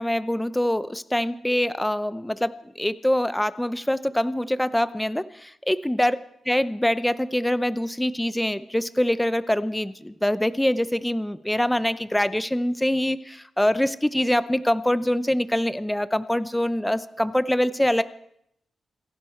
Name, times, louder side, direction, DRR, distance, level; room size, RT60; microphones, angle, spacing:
voice 1, 0.0-2.5 2.8-6.2 6.5-18.0, left 1 dB, 5° left, 14 dB, 0.6 m, -24 dB
27.0 x 11.0 x 4.4 m, 0.74 s
wide cardioid pair, 135°, 0 cm